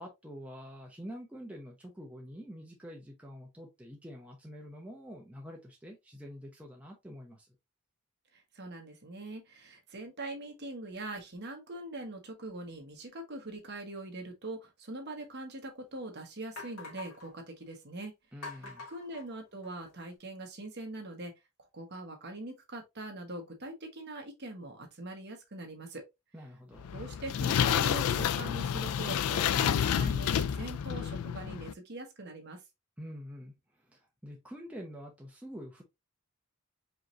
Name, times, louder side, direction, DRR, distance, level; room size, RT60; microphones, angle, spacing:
voice 1, 0.0-7.5 18.3-18.8 26.3-26.9 33.0-35.8, equal, 5° right, 0.7 m, -46 dB
voice 2, 8.3-18.1 18.9-21.3 21.7-26.0 26.9-32.6, right 2 dB, 50° right, 1.2 m, -42 dB
sound 1, 15.2-15.3 15.9-16.0 16.6-17.3 18.4-19.9, left 3 dB, 90° left, 1.9 m, -46 dB
sound 2, 26.8-31.7, left 8 dB, 75° left, 0.3 m, -29 dB
4.9 x 3.0 x 2.5 m
head